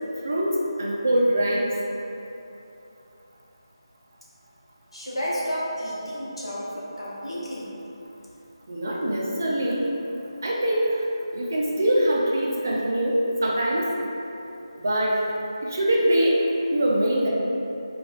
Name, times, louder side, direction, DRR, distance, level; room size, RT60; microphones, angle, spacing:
voice 1, 0.2-1.7 8.7-9.9 10.4-11.0 11.3-13.9 14.7-15.2 15.6-17.3, right 1 dB, 35° right, -3 dB, 0.4 m, -23 dB
voice 2, 4.9-7.7, equal, 85° left, -6 dB, 0.9 m, -31 dB
4.3 x 2.3 x 2.4 m, 2.9 s
figure-of-eight pair, 175°, 3 cm